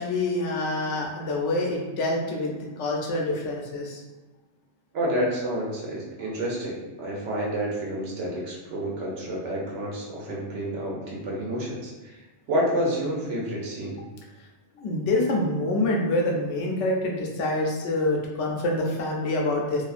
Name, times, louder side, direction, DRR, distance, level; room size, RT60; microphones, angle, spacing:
voice 1, 0.0-4.0 14.8-19.8, left 2 dB, 85° left, -1 dB, 0.9 m, -26 dB
voice 2, 4.9-12.2 12.5-14.0, equal, 80° right, -3 dB, 1.1 m, -29 dB
2.6 x 2.4 x 2.4 m, 1.1 s
omnidirectional pair, 1.2 m